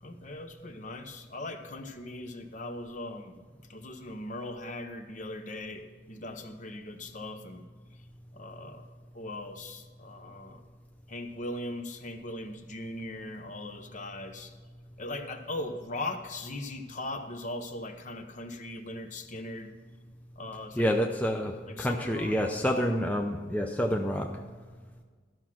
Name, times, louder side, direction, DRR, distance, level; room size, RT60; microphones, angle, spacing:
voice 1, 0.0-3.3 3.7-7.6 8.3-8.9 9.1-10.6 11.1-14.5 15.0-19.7 20.4-20.9 21.7-22.5, left 1 dB, 40° left, 7 dB, 0.8 m, -39 dB
voice 2, 20.8-24.4, equal, 10° left, 3 dB, 0.5 m, -28 dB
13.0 x 6.1 x 5.9 m, 1.5 s
head